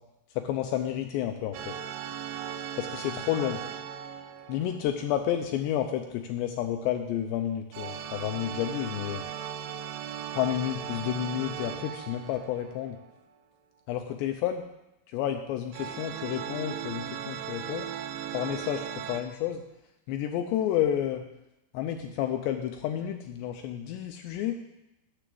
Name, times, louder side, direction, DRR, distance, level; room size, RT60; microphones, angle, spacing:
voice 1, 0.4-1.7 2.8-3.6 4.5-9.2 10.3-13.0 13.9-14.6 15.1-17.9 18.3-19.6 20.1-21.2 21.7-24.6, left 11 dB, 85° left, 5 dB, 2.5 m, -30 dB
Paused Organ, 1.5-5.4 7.7-13.2 15.7-19.2, right 9 dB, 85° right, 2.9 m, -38 dB
10.0 x 6.1 x 7.6 m, 0.91 s
omnidirectional pair, 5.5 m